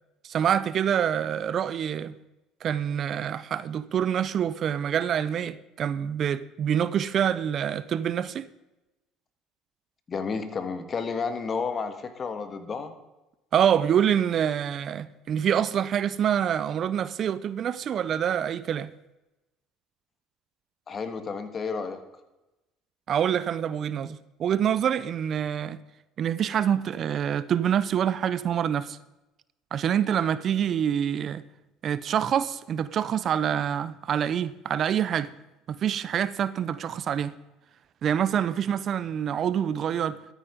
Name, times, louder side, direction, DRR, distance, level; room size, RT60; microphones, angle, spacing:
voice 1, 0.2-2.2 2.6-8.5 13.5-18.9 23.1-25.8 26.2-29.0 29.7-31.5 31.8-35.3 35.7-37.3 38.0-40.2, right 9 dB, 50° right, 0.5 m, -26 dB
voice 2, 10.1-12.9 20.9-22.0, left 5 dB, 35° left, 1.5 m, -31 dB
13.0 x 8.9 x 5.1 m
supercardioid pair, 85°, 0 cm